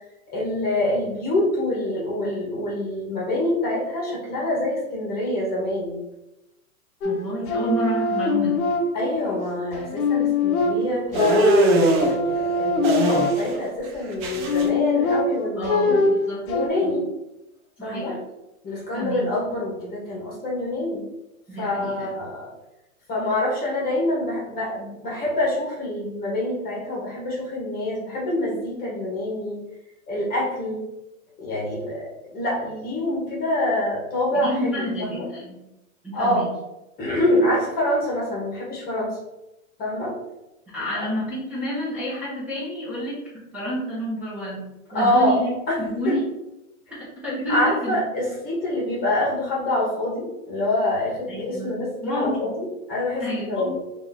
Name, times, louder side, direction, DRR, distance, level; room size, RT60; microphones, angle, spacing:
voice 1, 0.3-6.0 8.9-16.0 16.5-17.1 17.8-18.1 18.6-21.0 21.6-22.5 23.1-29.6 30.1-30.8 31.4-35.2 36.1-36.4 37.0-39.2 39.8-40.2 40.9-41.1 44.9-45.4 45.7-45.8 47.5-53.8, left 1 dB, 20° left, -4 dB, 1.3 m, -26 dB
sound 1, 7.0-9.3 9.7-13.7 14.2-16.7, left 3 dB, 80° left, 0.9 m, -23 dB
voice 2, 7.0-8.6 15.6-16.4 16.8-17.0 17.8-18.2 18.9-19.2 21.5-22.1 34.4-35.6 36.0-36.4 40.7-43.1 43.5-45.5 45.8-46.2 46.9-48.1 51.3-52.5 53.2-53.7, equal, 5° right, -11 dB, 1.0 m, -29 dB
sound 2, 11.1-12.1 12.8-13.6 13.8-14.6, right 2 dB, 30° right, 0.6 m, -21 dB
3.0 x 2.9 x 4.0 m, 0.94 s
hypercardioid pair, 145°, 43 cm